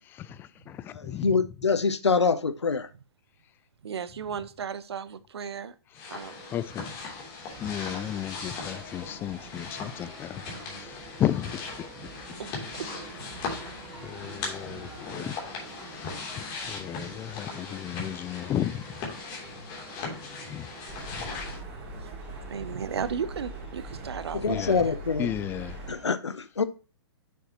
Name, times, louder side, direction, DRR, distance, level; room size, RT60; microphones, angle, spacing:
voice 1, 0.0-1.3 6.5-6.8 7.6-10.4 10.7-11.9 14.0-15.4 15.9-16.1 16.7-18.8 20.5-20.7 21.1-21.3 24.5-24.8 25.2-25.8, left 11 dB, 15° left, 0.3 m, -33 dB
voice 2, 0.9-2.9 24.3-25.3 25.9-26.6, left 5 dB, 85° left, 0.7 m, -25 dB
voice 3, 3.8-5.7 6.1-6.3 10.5-10.6 12.4-12.9 14.2-14.3 14.7-14.8 21.4-21.6 22.0-22.1 22.5-24.6 24.8-24.9, right 7 dB, 70° right, 0.7 m, -35 dB
sound 1, 5.9-21.6, left 4 dB, 30° left, 3.2 m, -39 dB
sound 2, 7.5-26.1, right 1 dB, 15° right, 4.8 m, -48 dB
sound 3, 20.9-25.9, right 2 dB, 35° right, 2.1 m, -41 dB
7.8 x 6.7 x 3.0 m
figure-of-eight pair, 120°, 14 cm